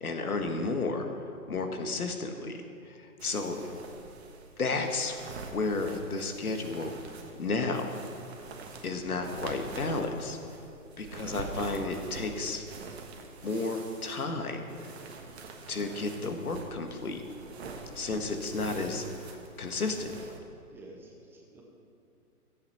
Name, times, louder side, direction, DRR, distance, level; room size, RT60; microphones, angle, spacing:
voice 1, 0.0-2.6 2.8-3.6 4.6-5.2 5.5-7.0 7.4-8.0 8.8-10.4 11.0-12.6 13.4-14.9 15.7-17.2 18.0-20.1, left 3 dB, 70° left, 5 dB, 1.8 m, -32 dB
sound 1, 3.2-20.4, right 4 dB, 45° right, 1.6 m, -45 dB
voice 2, 20.7-21.6, right 2 dB, 5° right, -1 dB, 0.9 m, -51 dB
13.5 x 8.5 x 5.7 m, 2.5 s
figure-of-eight pair, 135°, 45 cm